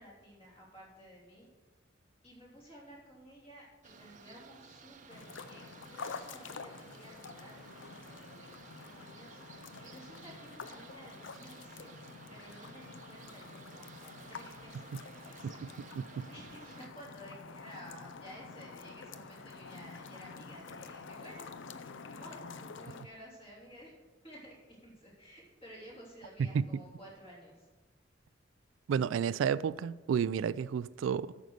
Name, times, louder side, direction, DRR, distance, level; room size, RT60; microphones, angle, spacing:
voice 1, 0.0-1.5 2.2-12.0 12.3-15.7 16.3-27.7, equal, 30° left, 3.3 m, -54 dB
sound 1, 3.8-16.9, right 5 dB, 40° right, 0.7 m, -55 dB
sound 2, 5.1-23.0, left 4 dB, 80° left, 0.6 m, -48 dB
voice 2, 15.4-16.3 26.5-26.6 28.9-31.4, right 7 dB, 85° right, 0.3 m, -32 dB
9.2 x 6.3 x 6.5 m
head